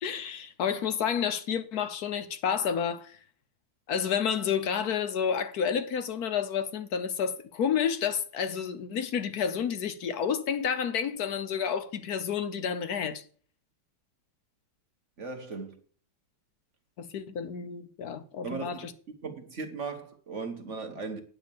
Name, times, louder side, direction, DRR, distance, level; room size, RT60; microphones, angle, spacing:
voice 1, 0.0-3.2 3.9-13.2 17.0-18.9, left 7 dB, 60° left, 1.2 m, -30 dB
voice 2, 15.2-15.8 18.4-18.9 19.2-21.2, right 4 dB, 40° right, 1.3 m, -37 dB
9.5 x 6.0 x 6.9 m
omnidirectional pair, 2.2 m